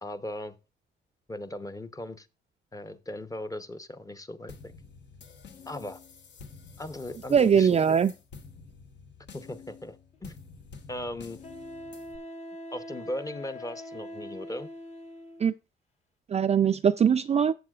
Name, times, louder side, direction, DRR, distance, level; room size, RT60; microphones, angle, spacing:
voice 1, 0.0-0.6 1.3-2.3 2.7-4.7 5.7-6.0 6.8-7.8 9.3-10.4 10.9-11.4 12.7-14.7, left 1 dB, 15° left, 0.8 m, -38 dB
sound 1, 4.5-12.2, left 5 dB, 65° left, 1.3 m, -49 dB
voice 2, 7.3-8.1 15.4-15.5 16.3-17.5, right 7 dB, 35° right, 0.4 m, -21 dB
Wind instrument woodwind instrument, 10.1-10.2 11.4-15.5, left 1 dB, 35° left, 1.3 m, -43 dB
14.0 x 7.5 x 2.4 m
cardioid pair, 90°, 20 cm